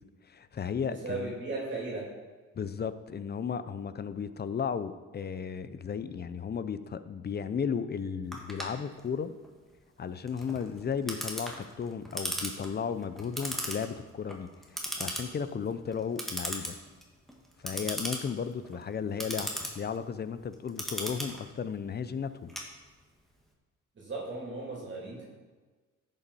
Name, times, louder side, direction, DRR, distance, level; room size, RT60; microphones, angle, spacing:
voice 1, 0.3-1.3 2.5-9.3 10.0-16.7 17.6-19.5 19.7-22.5, left 6 dB, 35° left, 13 dB, 0.6 m, -34 dB
voice 2, 0.8-2.1 23.9-25.2, right 3 dB, 40° right, -4 dB, 3.1 m, -36 dB
Clock, 8.3-23.3, equal, ahead, 1.7 m, -39 dB
10.5 x 7.2 x 4.2 m, 1.3 s
cardioid pair, 90°, 30 cm